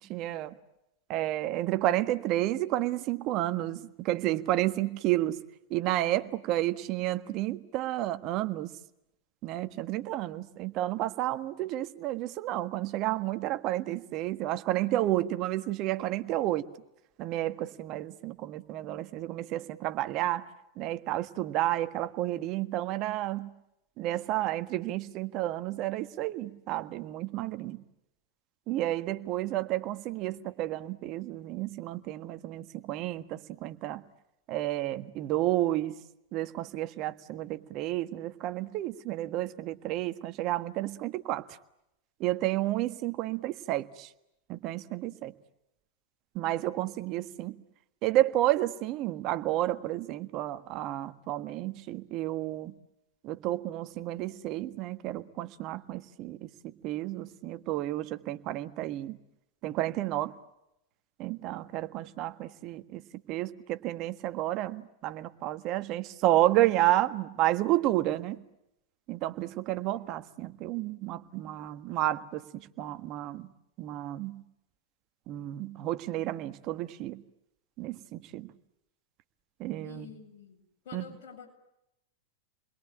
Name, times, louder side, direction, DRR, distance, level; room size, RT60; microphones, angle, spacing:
voice 1, 0.1-0.6 1.1-5.4 5.7-8.7 9.4-16.7 17.2-20.5 20.8-23.5 24.0-27.8 28.7-34.0 34.5-36.0 36.3-41.6 42.2-44.1 44.5-45.3 46.3-47.6 48.0-52.7 53.2-59.2 59.6-60.3 61.2-63.0 63.3-68.4 69.1-73.5 73.8-74.4 75.3-77.2 77.8-78.5 79.6-80.1 80.9-81.0, right 15 dB, 45° right, 11 dB, 1.5 m, -31 dB
voice 2, 79.8-81.5, left 6 dB, 60° left, 2 dB, 7.6 m, -48 dB
29.5 x 21.5 x 8.8 m, 0.85 s
hypercardioid pair, 95°, 0 cm